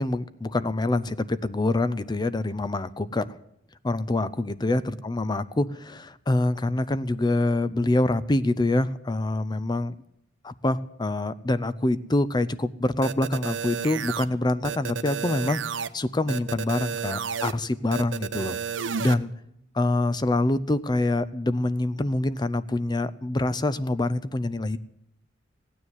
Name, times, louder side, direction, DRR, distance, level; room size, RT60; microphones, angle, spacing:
voice 1, 0.0-3.3 3.8-10.0 10.4-18.6 19.0-19.3 19.7-24.8, left 2 dB, 25° left, 14 dB, 0.5 m, -25 dB
sound 1, 13.0-14.3 14.6-15.9 16.3-17.5 17.9-19.1, right 7 dB, 80° right, 0.7 m, -31 dB
16.0 x 9.8 x 8.0 m, 0.77 s
head